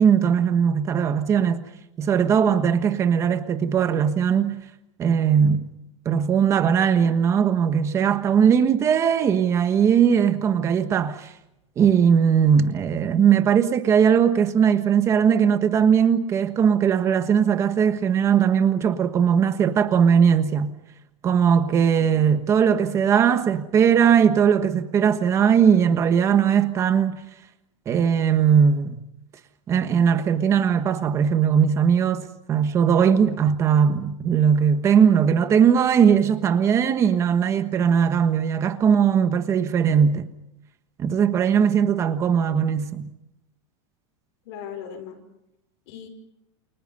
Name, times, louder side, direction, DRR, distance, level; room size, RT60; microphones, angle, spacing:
voice 1, 0.0-1.6 2.0-4.6 5.0-5.7 6.0-11.3 11.8-20.7 21.2-27.2 27.9-29.0 29.7-40.3 41.0-43.1, right 7 dB, 20° right, 1.4 m, -19 dB
voice 2, 2.4-2.7 44.4-45.2 45.9-46.1, left 8 dB, 55° left, 5.1 m, -39 dB
29.5 x 28.5 x 5.5 m
supercardioid pair, 175°, 16 cm